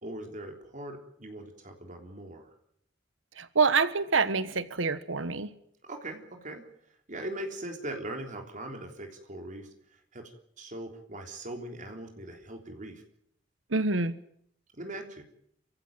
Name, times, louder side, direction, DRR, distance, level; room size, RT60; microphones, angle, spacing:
voice 1, 0.0-2.5 5.8-6.7 7.1-10.3 10.6-13.0 14.8-15.2, right 1 dB, 40° right, 3 dB, 3.6 m, -40 dB
voice 2, 3.4-5.5 13.7-14.1, right 4 dB, 80° right, 13 dB, 1.3 m, -26 dB
29.5 x 15.5 x 9.0 m, 0.71 s
head